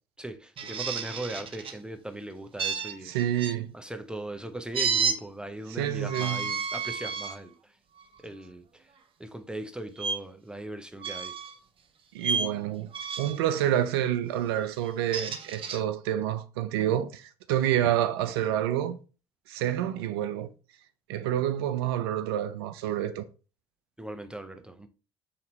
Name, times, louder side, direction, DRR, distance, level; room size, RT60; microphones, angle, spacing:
voice 1, 0.2-3.1 3.7-7.8 8.2-8.9 9.2-11.4 24.0-24.9, right 1 dB, 5° right, 0.7 m, -39 dB
sound 1, 0.6-1.8 2.6-3.5 4.7-5.2 6.0-7.4 8.0-8.2 10.0-10.2 11.0-11.6 12.2-12.5 12.9-13.4 14.9-15.8, right 5 dB, 45° right, 0.7 m, -31 dB
voice 2, 3.1-3.7 5.8-6.5 12.1-12.9 13.2-19.0 19.5-20.5 21.1-23.2, right 11 dB, 85° right, 0.4 m, -28 dB
3.9 x 2.8 x 4.4 m
hypercardioid pair, 65°, 13 cm